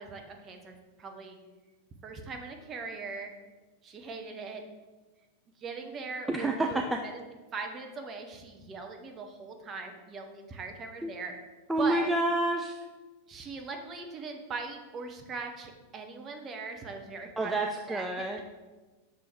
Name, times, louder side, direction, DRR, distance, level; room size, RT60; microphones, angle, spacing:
voice 1, 0.0-1.4 2.0-3.3 3.8-4.6 5.6-7.2 7.5-11.4 11.8-12.1 13.3-18.1, right 4 dB, 25° right, 3 dB, 0.8 m, -40 dB
voice 2, 6.3-7.0 11.0-11.1 11.7-12.8 17.4-18.4, right 2 dB, 10° right, 3 dB, 0.4 m, -28 dB
6.0 x 3.5 x 4.5 m, 1.2 s
figure-of-eight pair, 90°, 0 cm